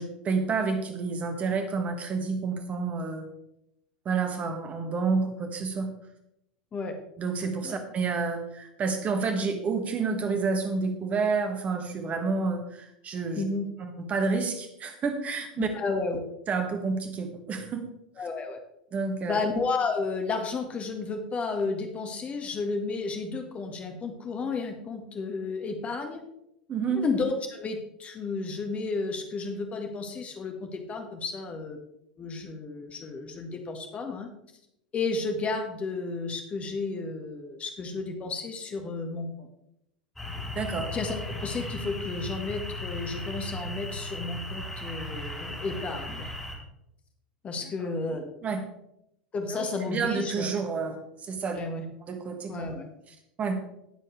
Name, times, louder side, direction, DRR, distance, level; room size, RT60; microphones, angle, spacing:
voice 1, 0.0-3.3 4.1-5.9 7.2-13.4 13.8-15.7 16.5-17.9 18.9-19.4 26.7-27.0 40.6-40.9 48.4-48.6 49.5-51.6 52.1-52.7 53.4-53.6, right 4 dB, 30° right, 6 dB, 1.8 m, -29 dB
voice 2, 13.3-13.7 15.6-16.2 18.2-18.6 19.3-26.2 26.9-31.8 32.2-34.3 34.9-39.5 40.9-46.3 47.4-48.3 49.3-50.5 51.5-51.8 52.5-52.9, left 3 dB, 25° left, 5 dB, 1.8 m, -32 dB
sound 1, 40.2-46.6, left 2 dB, 5° left, 5.5 m, -36 dB
19.0 x 7.6 x 3.4 m, 0.81 s
figure-of-eight pair, 85°, 5 cm